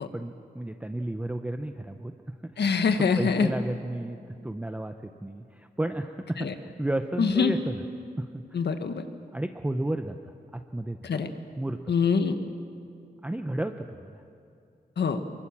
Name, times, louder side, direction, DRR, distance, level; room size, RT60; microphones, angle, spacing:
voice 1, 0.0-2.1 2.4-2.5 2.9-7.8 8.2-8.6 9.3-10.2 10.5-11.1 11.6-11.9 13.2-13.8 14.0-14.1, right 1 dB, 10° right, 7 dB, 0.6 m, -32 dB
voice 2, 2.6-3.5 6.4-6.5 7.2-7.5 8.5-9.0 11.0-11.3 11.9-12.3 15.0-15.2, left 5 dB, 85° left, 8 dB, 1.4 m, -24 dB
24.5 x 22.5 x 7.4 m, 2.5 s
wide cardioid pair, 175°, 17 cm